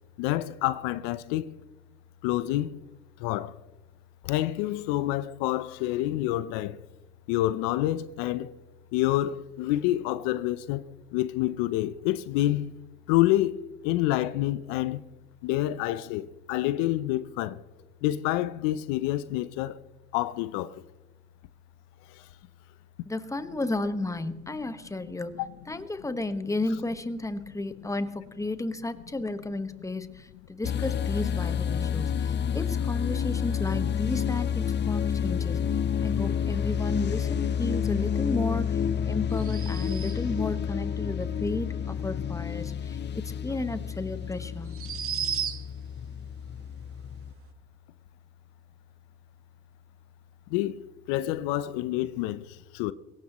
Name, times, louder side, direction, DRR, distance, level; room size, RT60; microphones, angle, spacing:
voice 1, 0.2-1.6 2.2-2.8 3.2-3.6 4.2-6.8 7.3-8.5 8.9-10.8 11.1-12.7 13.1-15.0 15.4-17.6 18.0-19.8 20.1-20.8 22.1-22.2 25.4-25.5 45.1-45.2 50.5-52.9, left 15 dB, 80° left, 0.7 m, -28 dB
voice 2, 23.0-43.0 43.4-44.7, left 2 dB, 10° left, 1.3 m, -33 dB
sound 1, 30.6-47.3, left 8 dB, 35° left, 0.7 m, -29 dB
sound 2, 39.3-40.4 43.5-43.6 44.6-45.9, right 9 dB, 45° right, 1.4 m, -34 dB
21.5 x 17.5 x 3.0 m
supercardioid pair, 85°, 32 cm